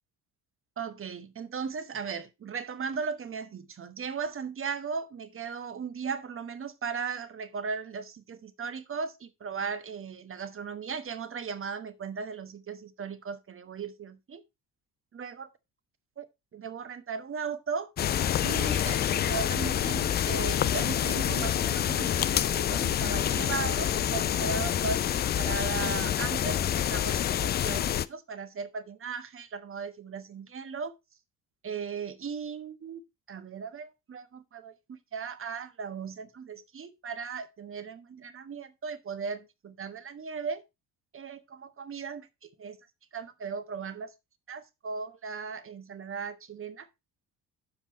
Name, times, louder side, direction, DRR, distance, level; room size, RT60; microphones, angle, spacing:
voice 1, 0.8-14.4 15.1-15.5 16.2-16.3 16.5-17.9 18.4-30.9 31.6-33.0 33.3-34.7 35.1-40.6 41.1-42.8 43.1-44.1 44.5-46.9, right 5 dB, 25° right, 1.1 m, -37 dB
sound 1, 18.0-28.1, left 10 dB, 25° left, 0.4 m, -27 dB
9.0 x 7.2 x 4.3 m
figure-of-eight pair, 50°, 47 cm